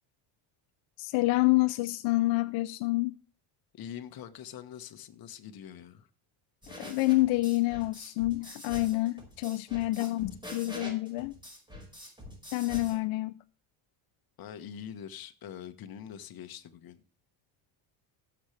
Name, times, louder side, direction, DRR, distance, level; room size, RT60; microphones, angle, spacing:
voice 1, 1.0-3.2 6.8-11.3 12.5-13.3, left 20 dB, 80° left, 0.7 m, -28 dB
voice 2, 3.7-6.1 14.4-17.0, left 9 dB, 50° left, 1.4 m, -44 dB
sound 1, 6.6-13.0, left 1 dB, 10° right, 5.0 m, -45 dB
17.0 x 7.4 x 3.3 m
cardioid pair, 130°, 47 cm